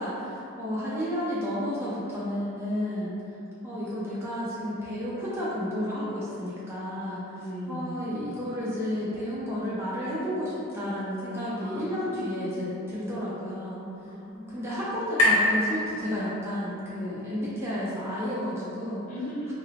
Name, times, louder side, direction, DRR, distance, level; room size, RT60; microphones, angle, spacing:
voice 1, 0.0-3.2 3.6-7.4 7.7-13.8 14.5-19.0, equal, 10° right, -9 dB, 0.4 m, -31 dB
voice 2, 7.4-7.9 11.5-12.8 14.0-14.7 19.1-19.5, equal, 35° left, -7 dB, 0.7 m, -39 dB
sound 1, 12.9-16.6, equal, 85° left, 1.0 m, -29 dB
2.9 x 2.0 x 3.9 m, 2.8 s
head